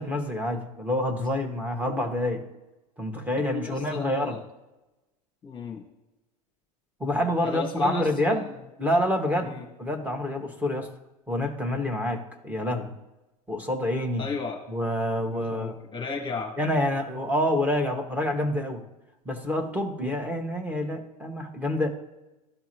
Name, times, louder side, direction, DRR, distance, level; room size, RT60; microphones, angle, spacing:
voice 1, 0.0-2.4 3.0-4.4 7.0-8.4 8.8-10.9 11.3-12.9 13.5-14.2 14.7-15.8 16.6-18.8 19.3-21.9, left 1 dB, 10° right, 2 dB, 1.8 m, -27 dB
voice 2, 3.4-4.4 5.4-5.8 7.4-8.5 9.4-9.7 14.2-14.6 15.3-16.6, left 4 dB, 25° left, 1 dB, 1.6 m, -34 dB
13.0 x 4.6 x 3.0 m, 1.0 s
hypercardioid pair, 90°, 20 cm